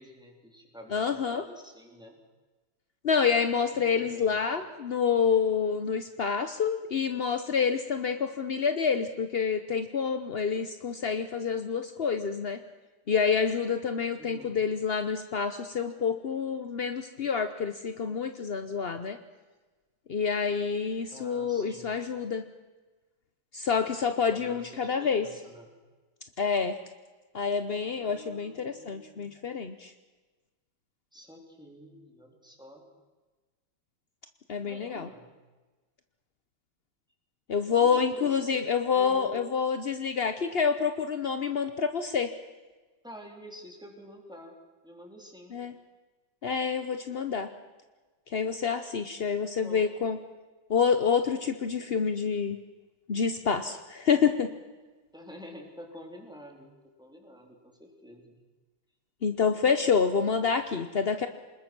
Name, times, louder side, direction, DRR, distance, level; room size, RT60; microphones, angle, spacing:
voice 1, 0.0-2.2 3.7-4.4 14.2-14.6 21.1-21.9 24.3-25.7 28.0-29.5 31.1-32.8 34.6-35.3 37.7-39.4 43.0-44.5 44.8-45.6 49.6-49.9 55.1-56.7 57.0-58.4, equal, ahead, 1 dB, 3.6 m, -48 dB
voice 2, 0.9-1.4 3.0-12.6 13.1-19.2 20.1-22.4 23.5-25.3 26.4-26.8 27.3-29.9 34.5-35.1 37.5-42.3 45.5-45.7 46.4-47.5 48.3-50.2 50.7-52.6 53.1-54.5 59.2-61.3, left 6 dB, 60° left, 8 dB, 0.6 m, -28 dB
26.0 x 21.0 x 6.1 m, 1.3 s
omnidirectional pair, 2.3 m